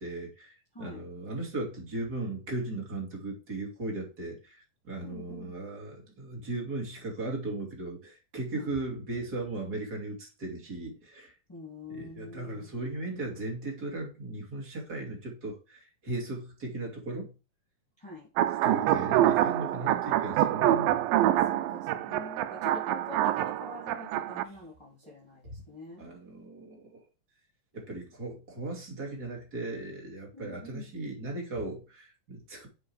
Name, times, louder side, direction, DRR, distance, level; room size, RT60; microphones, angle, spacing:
voice 1, 0.0-11.3 11.9-17.3 18.6-21.0 26.0-27.0 27.7-32.7, right 2 dB, 30° right, 3.0 m, -37 dB
voice 2, 5.0-5.5 8.5-8.7 11.5-12.7 18.0-18.3 21.5-25.4 25.7-26.0 30.3-30.8, left 2 dB, 10° left, 3.4 m, -45 dB
sound 1, 18.4-24.4, right 13 dB, 90° right, 2.4 m, -26 dB
7.7 x 5.3 x 4.7 m
omnidirectional pair, 3.9 m